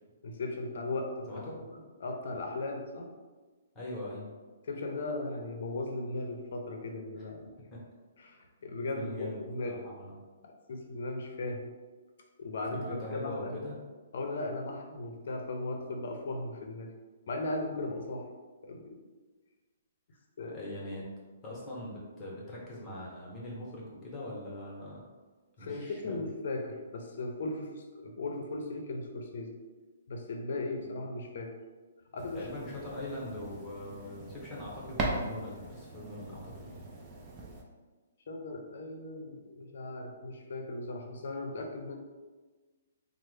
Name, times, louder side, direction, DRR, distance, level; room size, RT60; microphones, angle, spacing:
voice 1, 0.2-1.4 1.7-3.1 4.6-7.5 8.2-9.8 10.4-11.7 12.4-13.6 14.1-16.9 17.3-18.3 18.6-19.0 20.4-20.6 25.6-29.5 30.1-31.5 32.1-32.5 38.3-42.0, left 2 dB, 65° left, 3 dB, 0.5 m, -37 dB
voice 2, 3.7-4.3 7.7-7.8 8.9-9.4 9.7-10.1 12.8-13.8 20.4-21.1 21.4-25.1 25.6-26.2 30.8-31.0 32.3-36.8, left 1 dB, 15° left, -6 dB, 0.9 m, -42 dB
sound 1, 32.2-37.6, right 2 dB, 25° right, 0.4 m, -40 dB
3.2 x 2.0 x 3.2 m, 1.3 s
hypercardioid pair, 155°, 0 cm